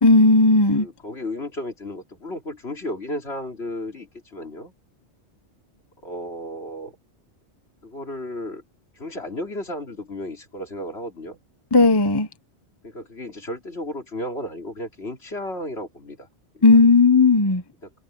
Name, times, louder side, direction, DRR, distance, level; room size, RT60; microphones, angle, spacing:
voice 1, 0.0-0.9 11.7-12.3 16.6-17.6, left 3 dB, 20° left, 1.0 m, -15 dB
voice 2, 0.7-4.7 6.0-6.9 7.8-8.6 8.9-11.4 12.8-16.3 16.5-16.9 17.8-18.0, left 1 dB, 65° left, 3.9 m, -34 dB
open air
omnidirectional pair, 1.2 m